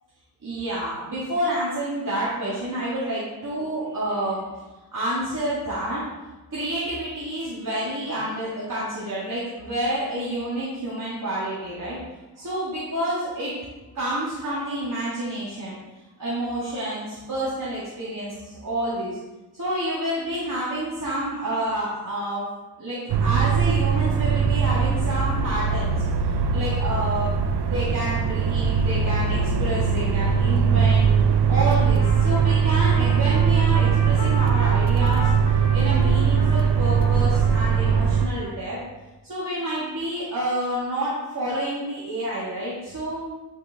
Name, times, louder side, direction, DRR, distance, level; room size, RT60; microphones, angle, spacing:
voice 1, 0.4-4.6 4.9-6.1 6.5-12.0 12.3-13.6 13.9-15.8 16.2-19.2 19.6-22.4 22.8-25.9 26.3-31.1 31.5-38.8 39.2-43.3, right 1 dB, 50° right, -9 dB, 1.9 m, -29 dB
sound 1, 23.1-38.3, right 6 dB, 80° right, 0.7 m, -21 dB
Trumpet, 31.6-38.7, equal, 50° left, 1.7 m, -37 dB
8.7 x 4.8 x 3.5 m, 1.1 s
wide cardioid pair, 110°, 39 cm